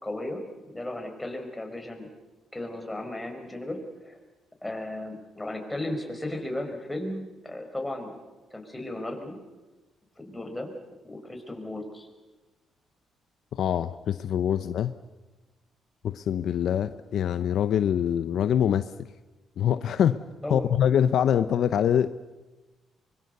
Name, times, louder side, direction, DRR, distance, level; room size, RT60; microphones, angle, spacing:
voice 1, 0.0-2.1 2.5-4.2 4.6-8.2 8.5-9.4 10.2-10.7 11.0-12.1 20.4-20.6, left 1 dB, 10° left, 3 dB, 5.2 m, -35 dB
voice 2, 13.5-14.9 16.0-18.9 19.6-20.2 20.5-22.1, left 9 dB, 70° left, 12 dB, 0.8 m, -24 dB
24.0 x 23.0 x 6.8 m, 1.2 s
cardioid pair, 90°, 0 cm